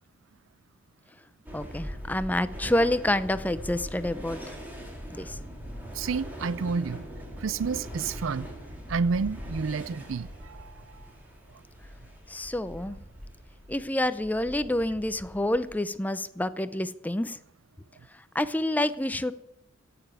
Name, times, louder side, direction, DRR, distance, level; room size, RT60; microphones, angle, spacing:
voice 1, 1.5-4.6 5.1-5.4 12.3-13.0 13.7-17.4 18.3-19.3, left 1 dB, 10° left, 0.6 m, -28 dB
sound 1, 1.5-15.8, equal, 10° right, 3.5 m, -41 dB
voice 2, 5.9-7.1 7.4-8.5 8.9-11.1, right 5 dB, 80° right, 0.5 m, -30 dB
16.5 x 6.9 x 9.6 m
head